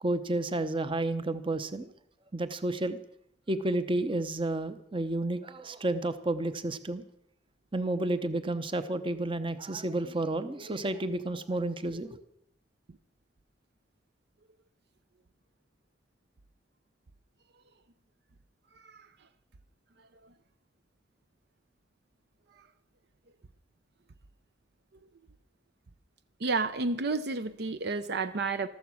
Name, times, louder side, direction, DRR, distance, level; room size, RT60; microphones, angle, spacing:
voice 1, 0.0-1.9 2.3-3.0 3.5-7.0 7.7-12.2, right 2 dB, 30° right, 12 dB, 0.8 m, -31 dB
voice 2, 18.8-19.1 20.2-20.3 22.6-22.7 26.4-28.7, right 3 dB, 60° right, 12 dB, 0.6 m, -31 dB
14.5 x 13.0 x 6.3 m, 0.74 s
head